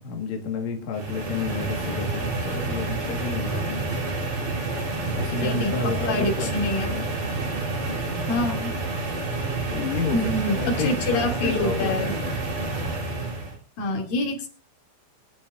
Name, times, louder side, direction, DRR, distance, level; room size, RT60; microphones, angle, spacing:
voice 1, 0.0-3.8 5.2-7.1 9.7-10.2 10.5-12.4, left 4 dB, 55° left, 2 dB, 2.8 m, -31 dB
sound 1, 0.9-13.6, right 3 dB, 55° right, 4.9 m, -29 dB
voice 2, 5.4-6.9 8.3-8.7 10.1-12.1 13.8-14.5, left 2 dB, 75° left, 1 dB, 4.5 m, -26 dB
23.5 x 10.0 x 2.6 m, 0.38 s
omnidirectional pair, 4.1 m